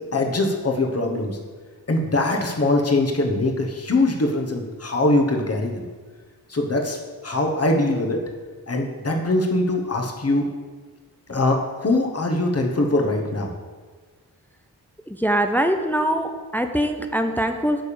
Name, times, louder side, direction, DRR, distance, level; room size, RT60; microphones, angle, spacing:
voice 1, 0.1-1.4 1.9-5.9 6.5-8.2 8.7-10.5 11.3-13.5, left 2 dB, 40° left, 2 dB, 1.2 m, -22 dB
voice 2, 15.1-17.8, right 1 dB, 5° left, 6 dB, 0.5 m, -23 dB
9.1 x 3.5 x 6.9 m, 1.5 s
wide cardioid pair, 95°, 39 cm